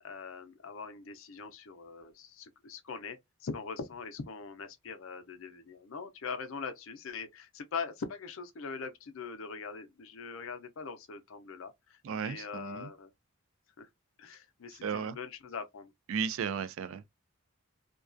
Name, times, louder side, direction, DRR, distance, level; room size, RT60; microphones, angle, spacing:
voice 1, 0.0-13.1 13.8-13.9 14.2-15.9, left 5 dB, 70° left, 0.5 m, -42 dB
voice 2, 12.0-12.9 14.8-15.2 16.1-17.1, right 6 dB, 70° right, 0.3 m, -34 dB
2.3 x 2.2 x 2.4 m
head